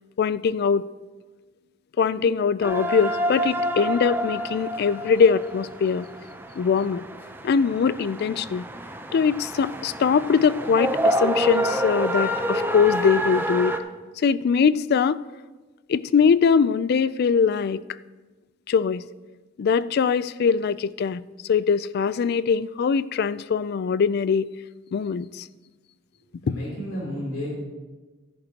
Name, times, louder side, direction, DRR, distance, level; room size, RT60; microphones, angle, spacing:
voice 1, 0.2-0.9 2.0-6.1 6.6-7.0 7.4-8.7 9.1-13.8 14.2-15.2 15.9-17.8 18.7-19.0 19.6-24.5 24.9-25.5 26.5-26.6, left 6 dB, 55° left, 18 dB, 0.3 m, -22 dB
sound 1, 2.6-13.8, right 1 dB, 10° right, 0.6 m, -28 dB
voice 2, 26.4-27.5, equal, 75° left, -5 dB, 3.1 m, -31 dB
13.5 x 10.5 x 2.9 m, 1.2 s
head